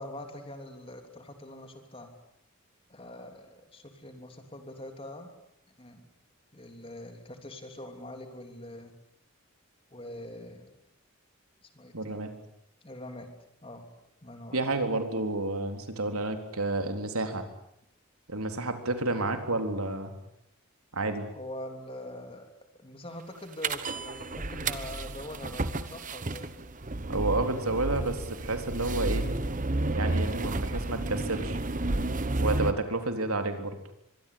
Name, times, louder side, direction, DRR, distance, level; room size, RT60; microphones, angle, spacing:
voice 1, 0.0-2.1 2.9-5.3 5.8-6.0 6.5-8.9 9.9-10.8 11.6-12.1 12.8-13.3 13.6-13.8 14.2-14.6 21.3-22.5 22.8-26.5, left 1 dB, 25° left, 5 dB, 3.3 m, -43 dB
voice 2, 11.9-12.3 14.5-17.4 18.3-20.1 20.9-21.3 27.1-29.3 29.9-31.6 32.4-33.8, right 2 dB, 80° right, 6 dB, 3.7 m, -30 dB
sound 1, 23.6-32.7, right 2 dB, 35° right, 1.2 m, -31 dB
24.0 x 23.5 x 8.7 m, 0.76 s
head